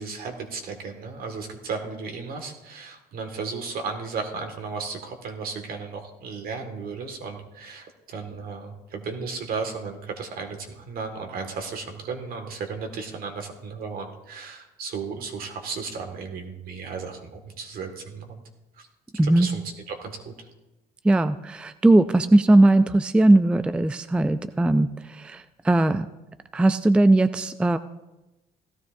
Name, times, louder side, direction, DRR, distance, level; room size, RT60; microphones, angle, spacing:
voice 1, 0.0-18.4 18.8-18.9 19.2-19.6 19.9-20.3, right 5 dB, 60° right, 4 dB, 1.9 m, -34 dB
voice 2, 19.2-19.5 21.0-26.1 26.5-27.8, right 2 dB, 5° right, 12 dB, 0.3 m, -19 dB
16.5 x 12.5 x 2.6 m, 1.0 s
cardioid pair, 110°, 17 cm